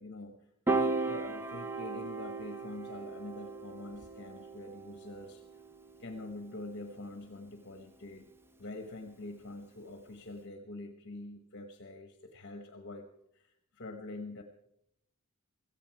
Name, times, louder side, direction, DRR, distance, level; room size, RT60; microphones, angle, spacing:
voice 1, 0.0-5.6 6.0-8.3 8.6-13.1 13.3-14.4, left 2 dB, 50° left, 5 dB, 1.1 m, -45 dB
Piano, 0.7-7.0, right 3 dB, 10° right, 0.6 m, -37 dB
17.5 x 14.5 x 4.6 m, 0.80 s
head